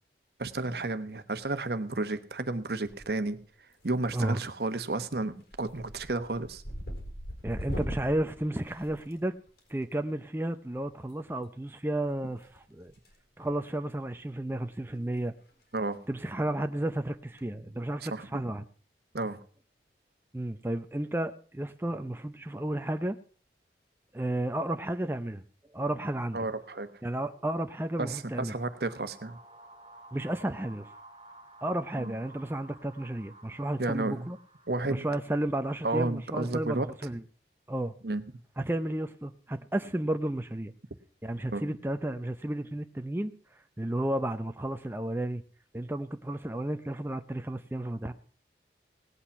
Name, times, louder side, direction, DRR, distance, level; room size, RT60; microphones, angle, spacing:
voice 1, 0.4-3.4 3.8-6.6 15.7-16.0 18.0-18.4 19.1-19.4 26.3-26.9 28.0-29.4 32.0-32.1 33.8-34.3 34.7-35.1 35.8-36.9 38.0-38.2 41.5-41.6, right 2 dB, 65° right, 11 dB, 1.0 m, -32 dB
Dog Breathing, 2.8-3.4 3.7-4.2 4.6-4.9 5.2-9.6 11.0-11.1 12.4-13.2 13.4-13.7 14.2-14.3 14.5-14.6 15.0-15.2 15.5-15.6 17.1-17.4, equal, 70° left, 4.3 m, -41 dB
voice 2, 7.4-9.3 9.7-12.9 13.4-15.3 16.1-18.6 20.3-23.2 24.1-25.4 25.7-26.4 27.0-28.5 30.1-30.9 31.6-34.4 34.9-37.2 37.7-37.9 38.6-40.7 41.2-43.3 43.8-45.4 45.7-48.1, right 1 dB, 10° right, 7 dB, 0.5 m, -32 dB
sound 1, 26.2-35.7, right 2 dB, 30° right, 2.2 m, -54 dB
17.5 x 8.6 x 5.7 m, 0.42 s
head